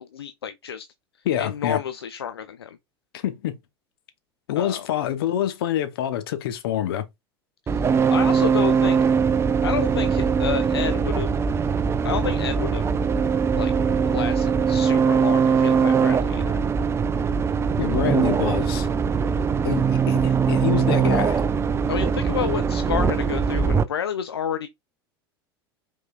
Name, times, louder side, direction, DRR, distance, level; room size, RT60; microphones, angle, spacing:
voice 1, 0.1-0.9 1.4-2.8 4.6-4.9 7.7-9.0 9.6-11.3 12.0-12.9 13.5-13.7 14.1-16.6 21.9-24.7, left 8 dB, 85° left, 0.4 m, -30 dB
voice 2, 1.2-1.8 3.1-3.6 4.5-7.0 17.8-18.9 19.6-21.4, left 11 dB, 65° left, 0.8 m, -26 dB
sound 1, 7.7-23.8, right 6 dB, 20° right, 0.4 m, -21 dB
5.3 x 3.7 x 2.3 m
figure-of-eight pair, 80°, 13 cm